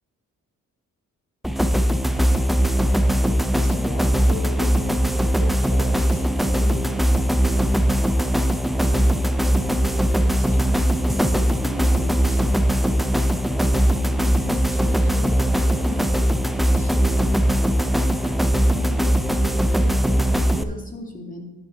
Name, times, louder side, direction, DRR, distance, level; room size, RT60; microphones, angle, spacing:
sound 1, 1.4-20.6, equal, ahead, 0.7 m, -20 dB
voice 1, 3.5-5.0 5.4-7.2, left 2 dB, 50° left, 3 dB, 3.0 m, -36 dB
voice 2, 8.9-9.2 9.5-12.6 13.7-16.2 16.7-17.4 18.2-21.5, left 1 dB, 25° left, 2 dB, 2.3 m, -38 dB
11.0 x 8.3 x 4.3 m, 1.1 s
cardioid pair, 65°, 32 cm